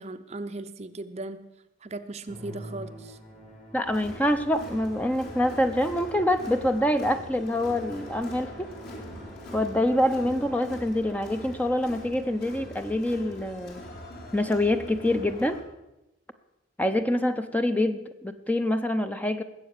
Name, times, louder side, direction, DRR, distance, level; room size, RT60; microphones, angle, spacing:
voice 1, 0.0-1.5 1.8-3.2, right 2 dB, 35° right, 10 dB, 0.6 m, -37 dB
Musical instrument, 2.3-10.8, equal, 35° left, 2.3 m, -46 dB
voice 2, 3.7-8.8 9.5-13.9 14.3-15.6 16.8-19.4, left 1 dB, 10° left, 8 dB, 0.6 m, -26 dB
Crowd, 3.8-15.6, equal, 55° left, 4.0 m, -43 dB
20.0 x 8.0 x 6.7 m, 0.94 s
head